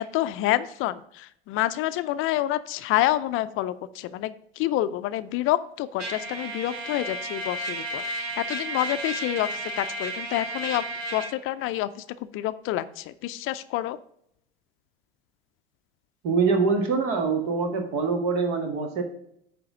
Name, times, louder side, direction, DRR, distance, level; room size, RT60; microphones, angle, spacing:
voice 1, 0.0-4.3 4.6-10.8 11.1-12.0 12.3-14.0, left 14 dB, 45° left, 13 dB, 0.5 m, -28 dB
Trumpet, 6.0-11.3, right 1 dB, 90° right, 1.6 m, -33 dB
voice 2, 16.2-19.0, right 4 dB, 60° right, 4 dB, 1.9 m, -24 dB
9.4 x 3.4 x 6.0 m, 0.71 s
hypercardioid pair, 80°, 30 cm